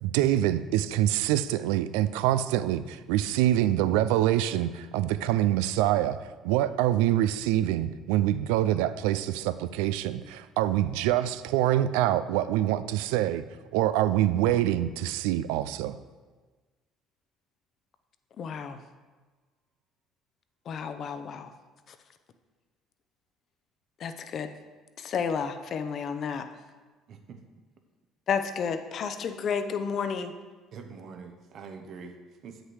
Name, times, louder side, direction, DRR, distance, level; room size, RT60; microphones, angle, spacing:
voice 1, 0.0-6.2 6.4-13.4 13.7-15.9, right 13 dB, 85° right, 14 dB, 0.3 m, -25 dB
voice 2, 18.4-18.8 20.7-21.5 24.0-24.5 25.0-26.5 28.3-30.3, left 6 dB, 55° left, 9 dB, 0.7 m, -31 dB
voice 3, 27.1-27.4 30.7-32.6, right 5 dB, 60° right, 5 dB, 0.9 m, -44 dB
8.0 x 6.5 x 4.7 m, 1.3 s
supercardioid pair, 75°, 0 cm